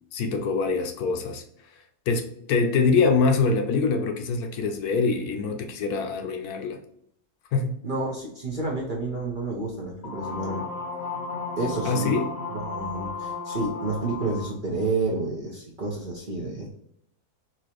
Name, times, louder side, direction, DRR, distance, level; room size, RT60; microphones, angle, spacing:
voice 1, 0.1-1.4 2.1-6.8 7.5-7.8 11.8-12.3, left 4 dB, 75° left, 5 dB, 1.1 m, -24 dB
voice 2, 7.8-10.6 11.6-12.1 12.5-16.7, right 3 dB, 45° right, -3 dB, 0.7 m, -30 dB
sound 1, 10.0-14.5, left 4 dB, 50° left, 0.8 m, -34 dB
4.3 x 2.6 x 2.9 m, 0.69 s
omnidirectional pair, 1.7 m